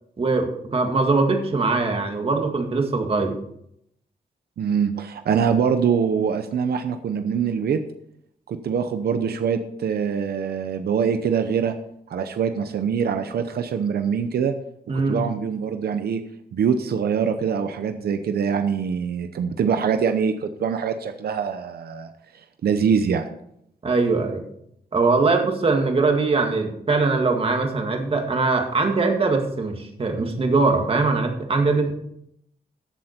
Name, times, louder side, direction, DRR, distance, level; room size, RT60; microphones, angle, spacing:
voice 1, 0.2-3.4 14.9-15.2 23.8-24.4 24.9-31.9, right 3 dB, 35° right, 3 dB, 1.9 m, -21 dB
voice 2, 4.6-7.8 8.5-11.7 12.1-14.5 15.1-16.2 16.5-22.1 22.6-23.3, right 7 dB, 90° right, 8 dB, 0.8 m, -23 dB
14.5 x 7.9 x 4.4 m, 0.74 s
wide cardioid pair, 140°, 16 cm